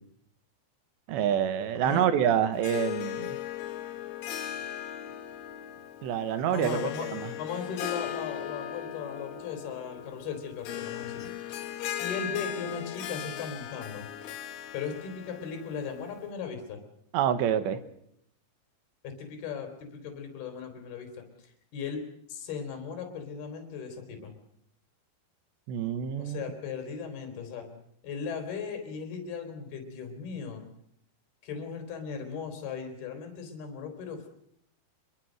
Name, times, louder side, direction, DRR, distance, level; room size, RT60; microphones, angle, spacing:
voice 1, 1.1-3.4 6.0-7.3 17.1-17.8 25.7-26.4, right 9 dB, 75° right, 11 dB, 3.4 m, -27 dB
voice 2, 1.8-2.1 6.5-7.1 7.4-11.7 12.0-14.1 14.7-16.8 19.0-22.0 22.3-24.3 26.2-27.7 28.0-30.6 31.4-34.3, left 6 dB, 55° left, 5 dB, 5.3 m, -37 dB
Harp, 2.5-16.3, left 11 dB, 80° left, 4.0 m, -38 dB
26.0 x 22.5 x 6.4 m, 0.74 s
omnidirectional pair, 5.5 m